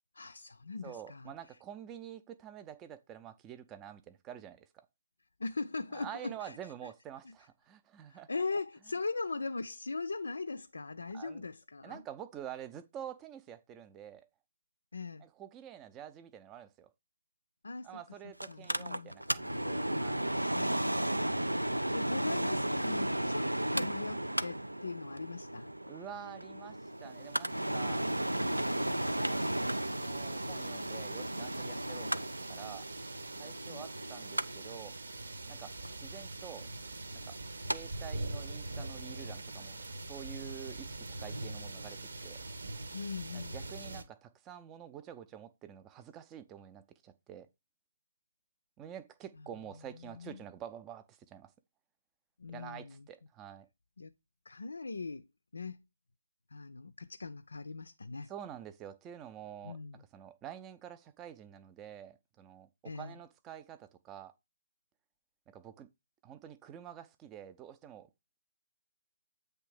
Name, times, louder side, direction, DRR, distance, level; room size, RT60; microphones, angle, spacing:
voice 1, 0.1-1.3 5.4-6.7 7.2-7.3 8.1-12.0 14.9-15.3 17.6-19.2 20.5-20.9 21.9-25.7 33.7-33.9 42.9-43.6 49.8-50.5 52.4-53.1 54.0-54.1 54.5-55.3 55.5-55.8 56.5-58.3 59.6-60.0 62.8-63.2, left 3 dB, 65° left, 0.4 m, -40 dB
voice 2, 0.8-4.9 5.9-8.3 11.1-11.5 11.8-14.3 15.2-16.9 17.8-20.2 25.9-28.1 28.4-32.9 33.4-35.0 35.5-36.7 37.2-37.4 37.6-42.4 43.3-47.5 48.8-51.5 52.5-53.7 58.3-64.3 65.5-65.9 66.2-68.1, right 10 dB, 15° right, 0.5 m, -48 dB
Mechanical fan, 18.4-37.8 38.1-38.2, right 1 dB, 85° right, 0.4 m, -35 dB
sound 1, 26.9-44.0, right 2 dB, 65° right, 0.9 m, -44 dB
8.1 x 3.3 x 4.8 m
figure-of-eight pair, 140°, 0 cm